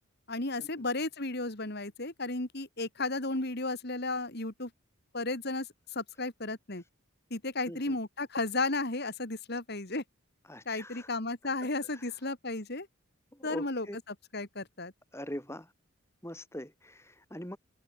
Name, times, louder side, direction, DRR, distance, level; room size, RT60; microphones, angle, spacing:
voice 1, 0.3-4.7 5.1-5.7 5.9-6.8 7.3-10.0 10.7-12.9 13.4-13.9 14.3-14.9, left 2 dB, 45° left, 2.4 m, -34 dB
voice 2, 7.7-8.0 10.5-11.1 11.9-12.0 13.3-14.0 15.1-15.7 16.2-17.6, equal, 10° left, 5.3 m, -42 dB
head